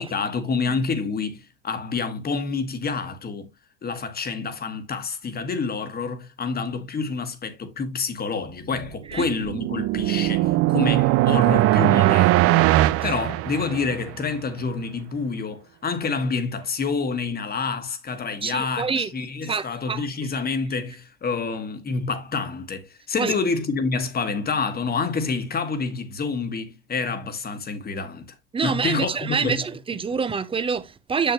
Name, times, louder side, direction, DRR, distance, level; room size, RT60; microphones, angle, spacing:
voice 1, 0.0-3.5 3.8-12.7 13.0-28.3 28.6-29.1 29.4-29.6, left 4 dB, 30° left, 1.5 m, -28 dB
sound 1, 8.9-14.1, right 17 dB, 45° right, 0.5 m, -20 dB
voice 2, 18.4-19.1 19.4-20.3 23.2-23.3 28.5-31.3, right 5 dB, 15° right, 0.7 m, -26 dB
6.8 x 6.6 x 2.9 m
hypercardioid pair, 90°, 33 cm